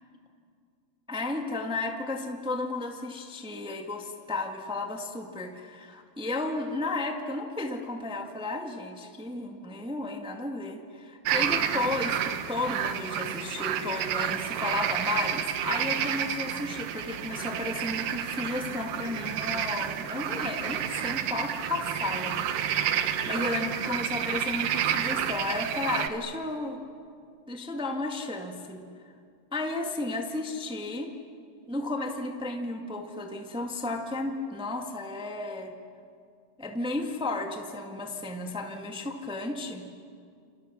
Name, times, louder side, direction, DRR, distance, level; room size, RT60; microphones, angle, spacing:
voice 1, 1.1-22.8 23.3-26.8 27.5-29.1 29.5-31.1 31.7-35.7 36.6-39.8, left 2 dB, 5° right, 3 dB, 0.5 m, -33 dB
sound 1, 11.3-26.1, right 9 dB, 75° right, 2.8 m, -30 dB
29.0 x 28.5 x 7.0 m, 2.3 s
omnidirectional pair, 4.1 m